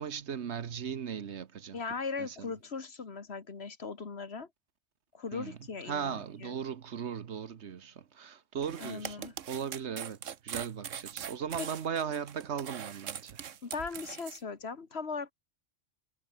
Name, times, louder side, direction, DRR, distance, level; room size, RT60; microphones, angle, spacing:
voice 1, 0.0-1.8 2.2-2.4 5.3-5.6 5.9-9.2 9.5-13.4, right 7 dB, 65° right, 1.3 m, -37 dB
voice 2, 1.7-4.5 5.1-6.6 8.8-9.3 11.6-11.7 13.6-15.3, left 4 dB, 55° left, 1.9 m, -38 dB
sound 1, 8.6-14.4, right 9 dB, 80° right, 1.4 m, -42 dB
omnidirectional pair, 1.3 m